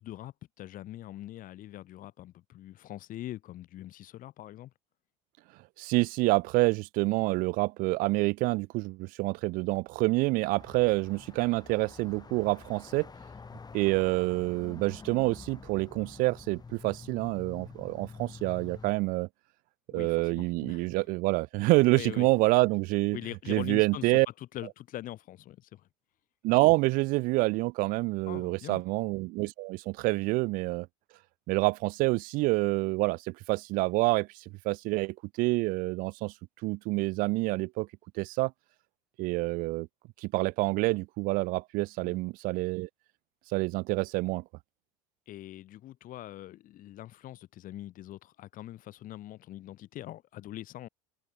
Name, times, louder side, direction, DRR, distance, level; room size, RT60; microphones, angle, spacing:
voice 1, 0.0-4.7 19.9-21.0 21.9-22.3 23.1-25.9 28.3-28.8 42.0-42.2 45.3-50.9, left 14 dB, 50° left, 3.9 m, -43 dB
voice 2, 5.8-13.1 13.7-19.3 19.9-23.2 23.5-24.3 26.4-30.9 31.5-36.3 36.6-37.9 38.2-38.5 39.2-39.9 40.2-42.9 43.5-44.4, right 23 dB, 55° right, 0.4 m, -27 dB
sound 1, 10.6-18.9, left 4 dB, 20° left, 5.2 m, -48 dB
hypercardioid pair, 75°, 18 cm